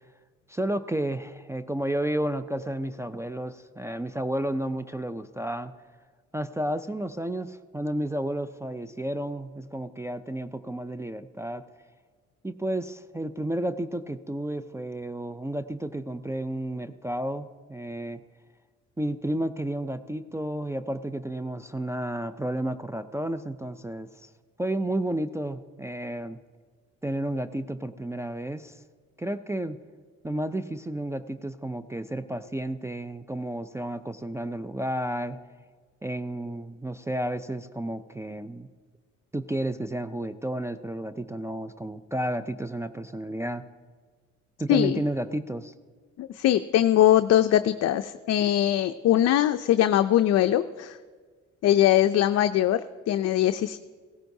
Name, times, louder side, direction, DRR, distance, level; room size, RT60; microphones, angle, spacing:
voice 1, 0.5-5.7 6.3-11.7 12.4-18.2 19.0-24.3 24.6-26.4 27.0-28.8 29.2-29.8 30.2-35.4 36.0-38.7 39.3-43.7 44.6-45.7, right 1 dB, 10° right, 8 dB, 0.4 m, -31 dB
voice 2, 44.7-45.0 46.2-51.0 51.6-53.8, left 12 dB, 60° left, 10 dB, 0.4 m, -22 dB
16.5 x 14.5 x 2.7 m, 1.5 s
cardioid pair, 90°, 30 cm